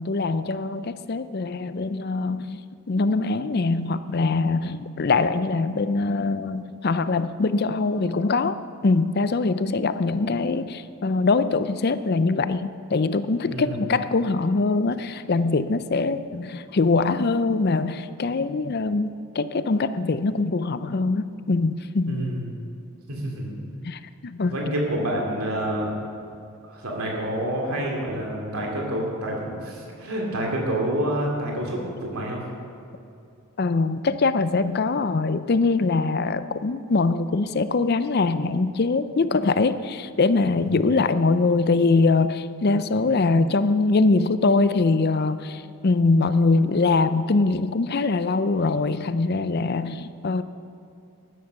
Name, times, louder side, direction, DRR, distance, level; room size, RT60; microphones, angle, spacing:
voice 1, 0.0-2.6 2.9-22.2 23.8-24.6 33.6-50.4, left 3 dB, 45° left, 13 dB, 0.5 m, -23 dB
voice 2, 13.5-13.9 22.0-22.5 23.1-23.6 24.4-25.9 26.6-32.4 40.6-40.7, right 1 dB, 85° right, -1 dB, 2.6 m, -28 dB
13.0 x 11.0 x 6.6 m, 2.6 s
head